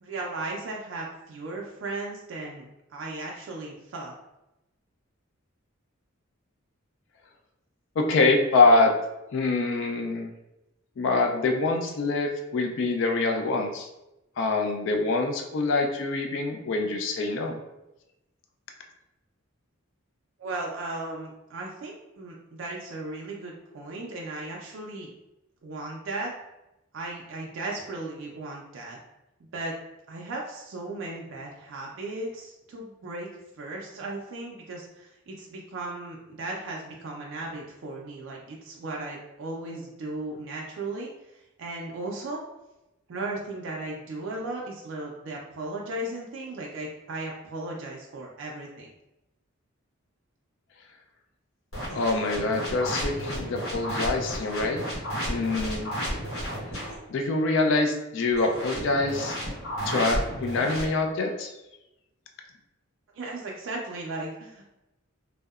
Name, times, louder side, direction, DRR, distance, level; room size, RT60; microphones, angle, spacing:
voice 1, 0.0-2.6 2.9-4.1 20.4-25.1 25.6-26.3 26.9-29.0 29.5-29.7 30.1-33.3 33.6-42.4 43.1-48.9 63.1-64.7, right 2 dB, 60° right, -2 dB, 0.3 m, -36 dB
voice 2, 8.0-8.9 9.3-10.3 11.0-13.9 14.4-17.6 51.8-54.8 55.3-56.1 57.1-59.4 59.9-61.5, left 3 dB, 60° left, 3 dB, 0.3 m, -25 dB
sound 1, 51.7-57.0 58.3-60.8, equal, 75° left, 1.1 m, -32 dB
2.7 x 2.0 x 2.3 m, 0.92 s
head